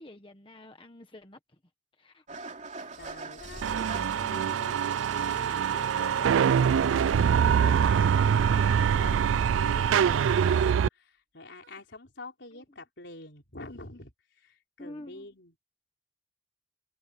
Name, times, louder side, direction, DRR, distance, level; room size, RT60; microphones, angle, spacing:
voice 1, 0.0-1.6 2.0-2.2 9.7-10.0 12.5-12.6 14.8-15.3, left 1 dB, 25° left, 1.3 m, -48 dB
Engine starting / Idling, 2.3-10.7, right 2 dB, 40° right, 2.9 m, -42 dB
sound 1, 2.8-3.0 3.7-4.0 4.5-4.7 5.6-5.8 6.4-6.6 7.4-7.7 8.6-8.8 9.9-10.1 11.6-11.8, right 4 dB, 70° right, 6.2 m, -57 dB
voice 2, 3.0-15.5, left 2 dB, 65° left, 4.4 m, -47 dB
sound 2, 3.6-10.9, right 8 dB, 85° right, 0.3 m, -24 dB
head